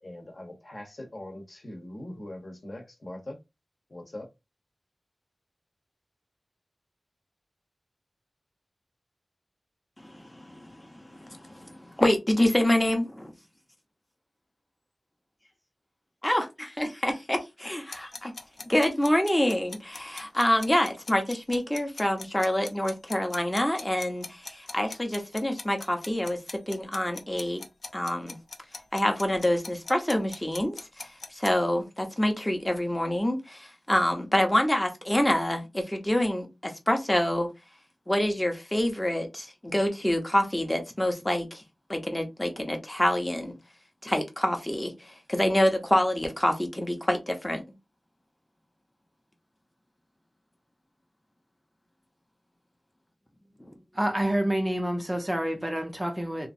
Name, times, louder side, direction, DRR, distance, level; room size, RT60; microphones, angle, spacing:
voice 1, 0.0-3.4 3.9-4.3, left 1 dB, 50° left, 0.9 m, -41 dB
voice 2, 10.0-13.3 16.2-16.4 16.8-17.8 18.2-18.3 18.7-26.4 26.7-27.6 27.9-28.4 28.9-37.5 38.1-41.6 41.9-43.5 44.0-47.6 53.6-53.7, left 1 dB, 15° left, 0.7 m, -26 dB
sound 1, 17.9-31.5, left 3 dB, 75° left, 0.5 m, -41 dB
voice 3, 53.9-56.5, right 1 dB, 20° right, 0.5 m, -28 dB
2.9 x 2.5 x 2.6 m
wide cardioid pair, 85°, 0 cm